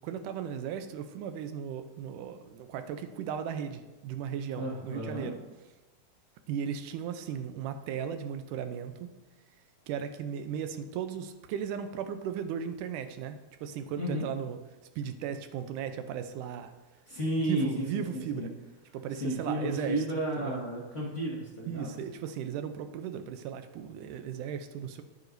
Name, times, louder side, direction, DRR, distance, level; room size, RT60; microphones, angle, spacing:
voice 1, 0.0-5.4 6.5-9.1 9.9-14.6 15.0-16.7 17.5-18.5 18.9-20.0 20.4-20.6 21.7-25.0, right 8 dB, 90° right, 9 dB, 2.2 m, -36 dB
voice 2, 4.6-5.3 14.0-14.2 17.1-18.5 19.1-21.9, right 1 dB, 35° left, -7 dB, 1.3 m, -32 dB
11.5 x 9.3 x 2.6 m, 1.2 s
omnidirectional pair, 3.5 m